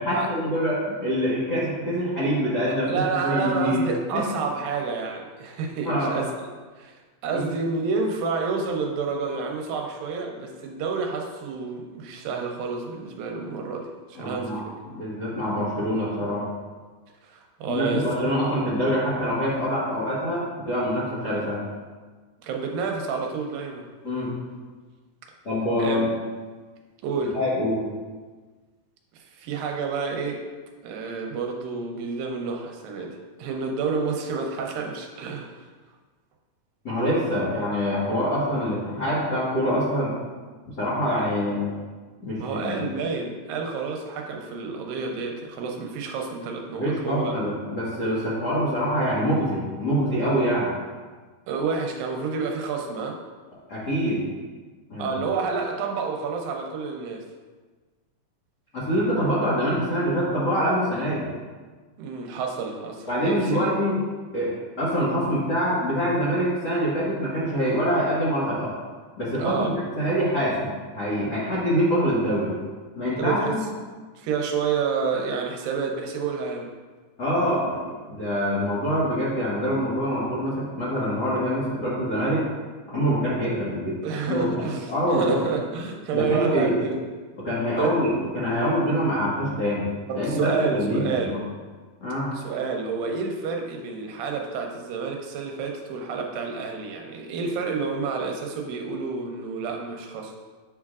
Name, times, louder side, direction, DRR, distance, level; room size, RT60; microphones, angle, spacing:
voice 1, 0.0-3.8 4.1-4.2 5.8-6.2 7.3-7.4 14.1-16.4 17.7-21.7 24.0-24.3 25.4-26.1 27.3-27.8 36.8-40.1 40.8-41.7 42.2-42.8 46.7-50.7 53.7-54.2 54.9-55.2 58.7-61.3 63.1-64.0 64.3-68.7 69.2-72.5 72.9-73.6 77.2-82.5 82.9-84.0 84.2-85.5 86.1-86.7 87.4-89.9 90.1-91.4 92.0-92.3, equal, 65° left, -10 dB, 1.0 m, -25 dB
voice 2, 2.9-6.3 6.8-6.9 7.2-14.7 17.2-18.1 22.4-23.9 25.8-26.0 27.0-27.4 29.1-30.5 30.8-35.7 42.4-47.3 51.5-53.2 55.0-57.2 62.0-63.7 69.4-69.8 73.2-73.6 74.2-76.7 84.0-87.0 87.8-88.0 90.1-91.4 92.3-100.3, right 5 dB, 80° right, 2 dB, 2.3 m, -29 dB
8.6 x 5.6 x 2.4 m, 1.4 s
omnidirectional pair, 4.2 m